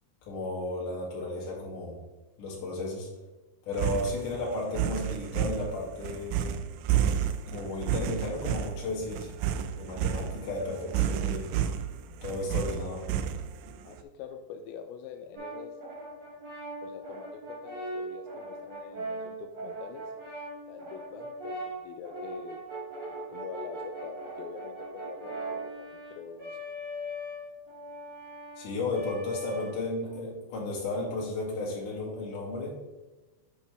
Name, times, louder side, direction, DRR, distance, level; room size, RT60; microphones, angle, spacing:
voice 1, 0.3-2.0 2.4-3.1 3.7-6.6 7.5-9.4 9.8-11.5 12.2-13.1 28.6-32.7, left 2 dB, 55° left, -4 dB, 2.7 m, -34 dB
sound 1, 3.7-13.8, right 9 dB, 90° right, 2.5 m, -30 dB
voice 2, 13.8-15.8 16.8-20.1 20.7-22.6 23.1-26.6, left 7 dB, 90° left, 5 dB, 2.5 m, -45 dB
Brass instrument, 15.3-30.1, right 1 dB, 40° right, 2.0 m, -40 dB
8.4 x 5.2 x 3.4 m, 1.1 s
omnidirectional pair, 5.6 m